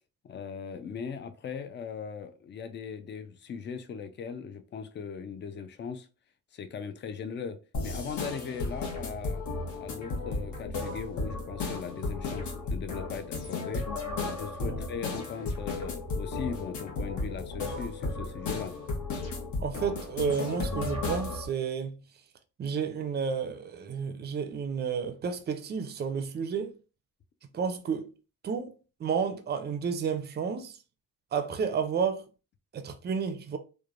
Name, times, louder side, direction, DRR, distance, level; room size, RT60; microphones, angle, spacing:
voice 1, 0.2-6.1 6.5-7.6 7.8-9.4 9.8-13.9 14.3-18.7, left 6 dB, 35° left, 0.4 m, -39 dB
sound 1, 7.7-21.5, left 3 dB, 60° left, 1.0 m, -34 dB
voice 2, 19.6-22.0 22.6-26.7 27.5-28.1 28.4-28.7 29.0-30.8 31.3-32.2 32.7-33.6, right 6 dB, 30° right, 0.5 m, -31 dB
3.1 x 2.1 x 2.4 m
cardioid pair, 105°, 33 cm